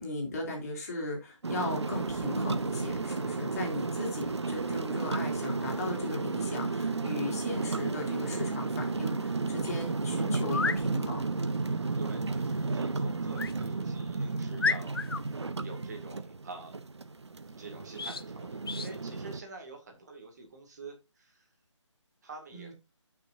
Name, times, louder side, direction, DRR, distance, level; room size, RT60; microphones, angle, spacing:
voice 1, 0.0-11.3 22.5-22.7, left 2 dB, 30° left, 3.8 m, -37 dB
sound 1, 1.4-19.4, right 3 dB, 60° right, 0.9 m, -33 dB
sound 2, 10.4-10.8 13.3-13.6 14.1-14.2 14.6-15.2 17.9-18.2 18.6-18.9, left 4 dB, 50° left, 0.6 m, -31 dB
voice 2, 12.0-15.0 15.3-16.8 17.6-21.5 22.2-22.7, right 3 dB, 35° right, 2.2 m, -46 dB
15.0 x 6.2 x 2.6 m
figure-of-eight pair, 155°, 16 cm